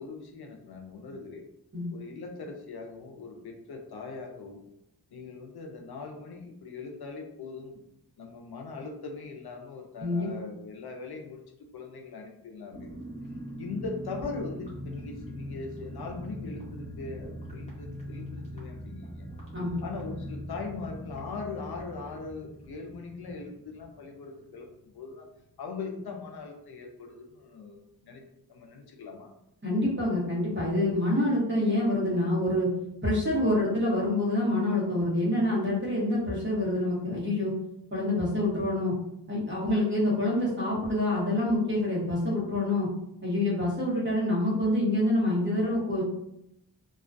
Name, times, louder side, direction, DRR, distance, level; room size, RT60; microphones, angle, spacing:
voice 1, 0.0-1.4 1.9-4.6 5.1-7.8 8.2-13.0 13.6-19.3 19.8-25.3 25.6-28.2 28.5-29.3, left 4 dB, 65° left, 2 dB, 0.5 m, -40 dB
sound 1, 12.7-25.1 25.3-25.4 25.7-26.0, equal, 15° left, 0.8 m, -42 dB
voice 2, 29.6-32.7 33.0-37.5 37.9-38.9 39.3-42.9 43.2-46.0, left 1 dB, 30° right, -5 dB, 0.9 m, -26 dB
2.3 x 2.2 x 2.4 m, 0.80 s
wide cardioid pair, 85°, 41 cm